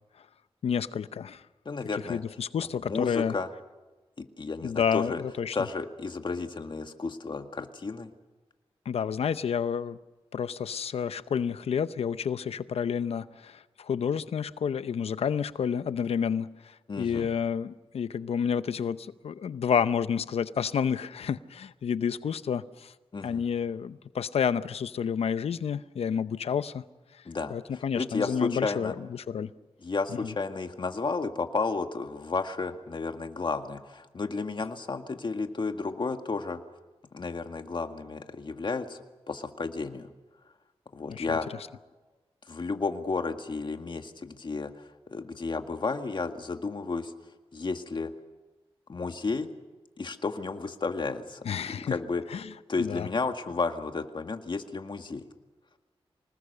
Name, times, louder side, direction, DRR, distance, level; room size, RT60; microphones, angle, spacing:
voice 1, 0.6-1.4 2.1-3.3 4.6-5.6 8.9-10.0 10.3-16.6 17.0-22.9 23.2-26.8 27.5-29.5 41.1-41.4 51.4-51.9 52.3-52.5 52.8-53.1, left 7 dB, 85° left, 14 dB, 0.7 m, -30 dB
voice 2, 1.7-2.2 2.6-3.5 4.2-5.2 5.5-8.1 16.9-17.3 23.1-23.4 27.3-28.9 29.8-36.6 37.1-39.0 39.3-40.1 40.9-41.5 42.5-47.1 47.5-48.1 48.9-49.5 50.0-51.5 51.8-52.2 52.7-55.2, left 4 dB, 50° left, 6 dB, 1.9 m, -32 dB
25.5 x 19.5 x 6.8 m, 1.2 s
cardioid pair, 70°, 10 cm